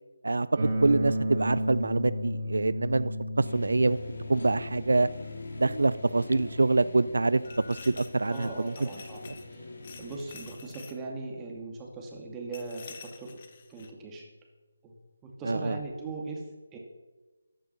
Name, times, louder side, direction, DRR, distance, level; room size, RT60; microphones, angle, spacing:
sound 1, 0.6-10.5, equal, 45° right, 3.3 m, -35 dB
voice 1, 0.8-3.1 3.4-5.1 5.6-7.4 7.7-8.7 15.4-15.8, right 3 dB, 70° right, 16 dB, 0.5 m, -25 dB
sound 2, 3.4-10.5, left 2 dB, 60° left, 4.2 m, -44 dB
sound 3, 7.4-9.6 9.8-11.0 12.5-13.9, left 5 dB, 35° left, 1.6 m, -49 dB
voice 2, 8.3-9.6 10.0-13.4 13.7-14.3 14.8-15.0 15.4-16.4 16.7-16.8, right 3 dB, 10° right, 0 dB, 2.3 m, -39 dB
14.5 x 11.5 x 5.8 m, 1.2 s
figure-of-eight pair, 160°, 0 cm